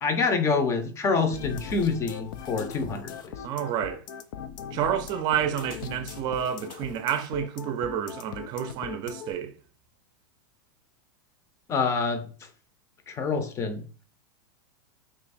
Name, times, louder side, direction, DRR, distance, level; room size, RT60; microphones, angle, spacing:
voice 1, 0.0-3.3 11.7-12.3 13.1-13.8, left 4 dB, 25° left, 0.6 m, -26 dB
sound 1, 1.3-9.3, left 8 dB, 70° left, 0.4 m, -40 dB
voice 2, 3.4-4.0 4.7-9.5, right 9 dB, 40° right, 0.5 m, -29 dB
2.9 x 2.5 x 4.1 m
supercardioid pair, 130°, 11 cm